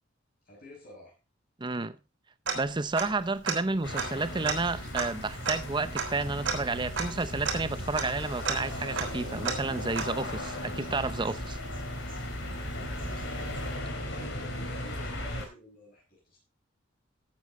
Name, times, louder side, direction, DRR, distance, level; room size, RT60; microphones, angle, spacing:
voice 1, 0.5-1.1 12.7-13.3 13.8-16.4, left 1 dB, 50° left, 5.6 m, -49 dB
voice 2, 1.6-2.0 2.5-11.6, right 3 dB, 25° right, 0.6 m, -31 dB
Tick-tock, 2.5-3.2 3.5-3.6 3.9-10.4, right 5 dB, 70° right, 3.6 m, -34 dB
sound 1, 3.8-15.5, left 1 dB, 70° left, 3.7 m, -37 dB
sound 2, 3.9-13.8, right 1 dB, 45° right, 1.3 m, -48 dB
14.0 x 8.6 x 3.8 m
head